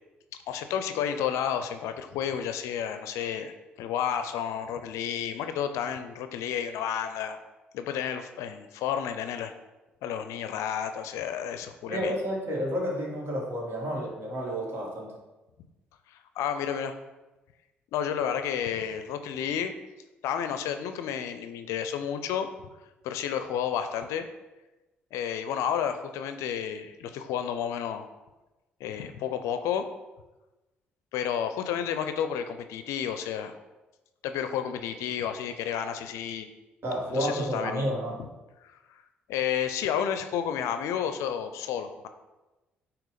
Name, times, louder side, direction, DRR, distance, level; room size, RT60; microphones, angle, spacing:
voice 1, 0.5-7.4 7.7-9.5 10.0-12.1 16.1-16.9 17.9-19.7 20.2-22.5 23.0-24.3 25.1-28.1 28.8-29.9 31.1-33.6 34.2-36.5 37.1-37.9 38.6-38.8 39.3-42.1, left 8 dB, 70° left, 9 dB, 0.5 m, -31 dB
voice 2, 11.9-15.2 36.8-38.2, equal, 50° right, -1 dB, 2.1 m, -30 dB
8.8 x 3.0 x 5.0 m, 1.1 s
hypercardioid pair, 45°, 5 cm